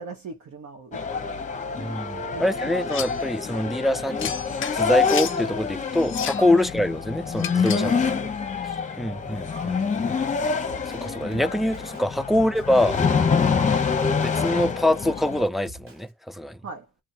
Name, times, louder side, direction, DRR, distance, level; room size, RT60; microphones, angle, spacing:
voice 1, 0.0-1.4 2.3-2.4 2.9-3.1 3.5-4.0 6.5-6.6 7.7-8.4 12.3-12.5 16.6-16.9, right 4 dB, 65° right, 1.3 m, -39 dB
sound 1, 0.9-15.5, left 5 dB, 25° left, 0.9 m, -26 dB
voice 2, 1.8-4.3 4.7-7.9 9.0-10.2 11.0-13.0 14.2-16.6, left 1 dB, ahead, 0.3 m, -24 dB
sound 2, 2.9-3.2 4.2-5.4 6.0-6.5 7.4-7.9, left 9 dB, 45° left, 0.6 m, -33 dB
Drum kit, 10.2-16.1, right 1 dB, 45° right, 1.8 m, -47 dB
2.6 x 2.5 x 4.2 m
cardioid pair, 90°, 30 cm